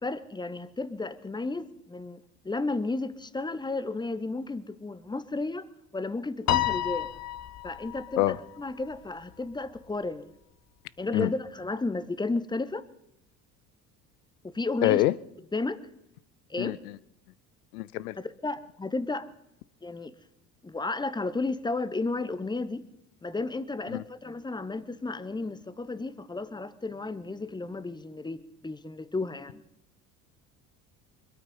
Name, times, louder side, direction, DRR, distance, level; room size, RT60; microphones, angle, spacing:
voice 1, 0.0-5.7 5.9-7.1 7.6-10.3 11.0-12.8 14.4-15.0 15.5-15.8 16.5-16.8 18.2-19.3 19.8-20.1 20.6-22.8 23.2-29.6, left 3 dB, 10° left, 1.0 m, -33 dB
Piano, 6.5-9.0, left 13 dB, 35° left, 0.9 m, -30 dB
voice 2, 14.8-15.1 16.6-17.0 17.7-18.2 23.9-24.0, left 17 dB, 65° left, 0.7 m, -25 dB
25.0 x 8.7 x 5.5 m
figure-of-eight pair, 60°, 49 cm